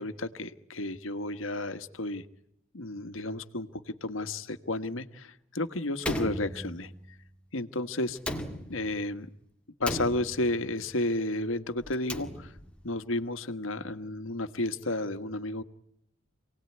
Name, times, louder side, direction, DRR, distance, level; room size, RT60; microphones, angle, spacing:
voice 1, 0.0-2.2 2.7-6.9 7.5-8.2 8.7-9.3 9.8-12.5 12.8-15.6, left 2 dB, 75° left, 11 dB, 1.4 m, -32 dB
Slam, 6.0-7.1 8.2-9.1 9.8-10.7 11.8-12.8, left 1 dB, 5° left, 2.0 m, -36 dB
28.0 x 18.5 x 9.7 m, 0.79 s
head